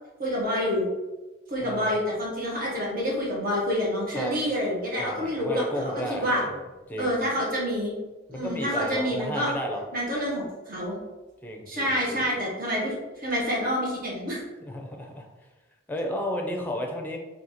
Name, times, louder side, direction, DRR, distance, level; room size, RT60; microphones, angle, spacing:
voice 1, 0.2-0.9 1.5-5.9 6.2-6.4 7.0-8.0 8.3-9.5 9.9-11.0 11.7-14.4, equal, 50° right, -4 dB, 1.4 m, -27 dB
voice 2, 1.6-2.0 4.1-4.3 5.0-6.6 6.9-7.2 8.3-9.8 11.4-12.3 14.6-15.3 15.9-17.2, equal, 10° left, 2 dB, 0.6 m, -33 dB
4.4 x 2.8 x 4.2 m, 1.1 s
head